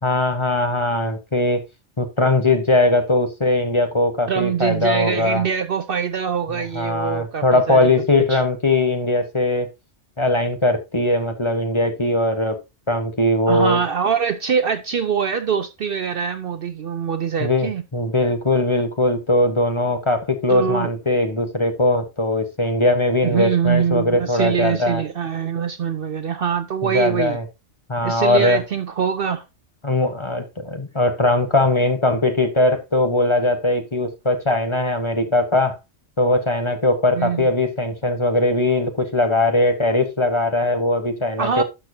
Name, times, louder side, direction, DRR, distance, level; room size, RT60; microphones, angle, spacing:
voice 1, 0.0-1.6 2.0-5.4 6.5-9.7 10.2-12.6 12.9-13.8 17.4-25.0 26.8-27.4 27.9-28.6 29.8-35.8 36.2-41.6, left 2 dB, 25° left, 1.2 m, -20 dB
voice 2, 4.3-7.9 8.3-8.4 13.5-17.8 20.5-20.9 23.2-27.4 28.0-29.4 37.1-37.5 41.4-41.6, right 7 dB, 55° right, 0.7 m, -23 dB
11.5 x 6.5 x 2.7 m
omnidirectional pair, 1.3 m